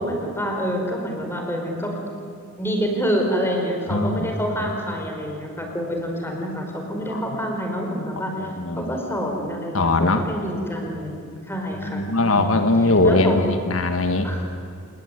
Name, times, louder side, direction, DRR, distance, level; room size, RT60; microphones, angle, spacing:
voice 1, 0.0-1.9 2.6-8.5 8.8-12.7 13.0-13.5 14.2-14.4, equal, 10° left, 2 dB, 5.1 m, -27 dB
voice 2, 3.9-4.3 7.1-7.2 8.4-8.9 9.7-10.2 11.9-14.3, left 2 dB, 65° left, 7 dB, 1.5 m, -20 dB
28.0 x 20.5 x 9.6 m, 2.4 s
head